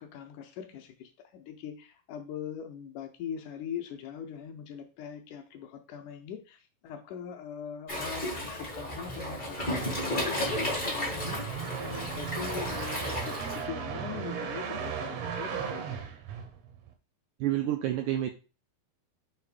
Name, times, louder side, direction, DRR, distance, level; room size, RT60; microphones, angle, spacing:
voice 1, 0.0-16.0, left 8 dB, 75° left, 6 dB, 2.0 m, -41 dB
Waves surf, 7.9-13.6, left 1 dB, 55° left, 0.5 m, -33 dB
sound 1, 9.4-16.9, right 7 dB, 75° right, 1.6 m, -37 dB
voice 2, 17.4-18.3, right 13 dB, 90° right, 5 dB, 1.7 m, -28 dB
6.7 x 3.0 x 4.8 m, 0.34 s
omnidirectional pair, 4.0 m